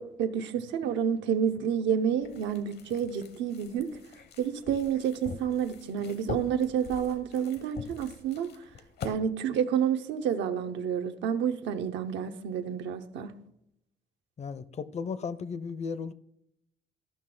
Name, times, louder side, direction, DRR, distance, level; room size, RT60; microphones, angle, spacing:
voice 1, 0.0-3.9 4.4-8.5 9.0-13.3, right 8 dB, 85° right, 0.7 m, -29 dB
sound 1, 2.2-9.1, left 5 dB, 65° left, 0.9 m, -43 dB
voice 2, 14.4-16.1, left 5 dB, 35° left, 0.5 m, -35 dB
14.0 x 5.9 x 3.7 m
cardioid pair, 105°, 18 cm